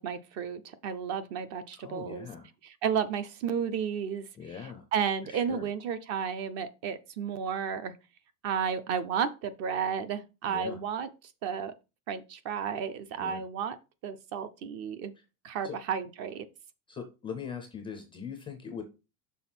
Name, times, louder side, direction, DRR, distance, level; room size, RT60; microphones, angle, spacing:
voice 1, 0.0-2.3 2.6-4.3 4.9-7.9 8.4-11.1 11.4-11.7 12.1-13.8 14.0-15.1 15.4-16.5, right 7 dB, 40° right, 13 dB, 0.6 m, -32 dB
voice 2, 1.8-2.5 4.3-4.8 5.2-5.7 10.4-10.8 13.2-13.4 15.2-15.3 15.6-15.8 16.9-18.8, left 7 dB, 15° left, 5 dB, 0.4 m, -41 dB
6.2 x 3.4 x 5.8 m, 0.28 s
cardioid pair, 170°, 42 cm